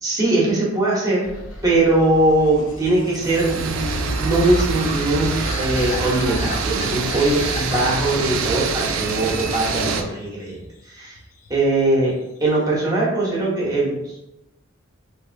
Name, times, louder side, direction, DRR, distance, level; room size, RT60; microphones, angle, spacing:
voice 1, 0.0-1.3 1.6-5.3 5.6-10.6 10.9-11.1 11.5-12.1 12.4-14.0, right 2 dB, 20° right, -5 dB, 0.9 m, -20 dB
sound 1, 1.2-7.4, left 1 dB, 80° left, 0.7 m, -39 dB
sound 2, 3.2-10.0, right 4 dB, 75° right, 0.3 m, -25 dB
sound 3, 3.5-10.0 10.4-11.8 12.1-12.7, left 3 dB, 40° left, 0.4 m, -37 dB
3.0 x 2.6 x 2.6 m, 0.90 s
head